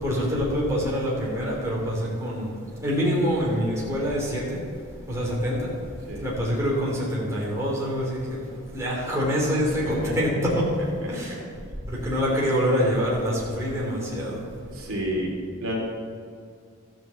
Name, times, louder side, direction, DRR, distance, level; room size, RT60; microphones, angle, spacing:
voice 1, 0.0-2.5 2.8-4.6 5.1-5.7 6.2-10.7 11.1-11.4 11.9-14.4, equal, 15° right, -5 dB, 2.8 m, -25 dB
voice 2, 9.8-10.4 11.3-11.4 14.7-15.7, right 1 dB, 60° right, -3 dB, 3.1 m, -30 dB
13.5 x 6.9 x 7.5 m, 2.2 s
head